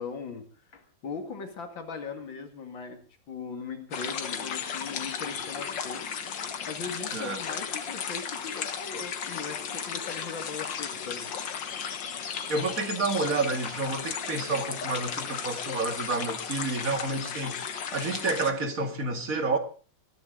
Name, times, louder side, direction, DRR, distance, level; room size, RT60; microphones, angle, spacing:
voice 1, 0.0-3.0 3.3-11.3, left 5 dB, 90° left, 2.9 m, -39 dB
sound 1, 3.9-18.5, left 7 dB, 75° left, 2.1 m, -35 dB
voice 2, 12.5-19.6, right 3 dB, 45° right, 2.4 m, -29 dB
21.0 x 15.0 x 3.8 m
omnidirectional pair, 2.0 m